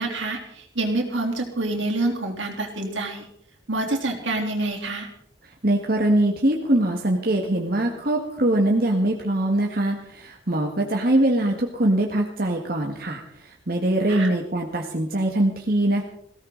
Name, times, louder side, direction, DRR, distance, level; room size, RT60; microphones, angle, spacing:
voice 1, 0.0-3.3 3.7-5.1 14.1-14.3, right 2 dB, 80° right, 1 dB, 3.6 m, -27 dB
voice 2, 5.6-16.0, right 1 dB, 50° right, 1 dB, 1.7 m, -22 dB
19.0 x 17.0 x 4.0 m, 0.68 s
head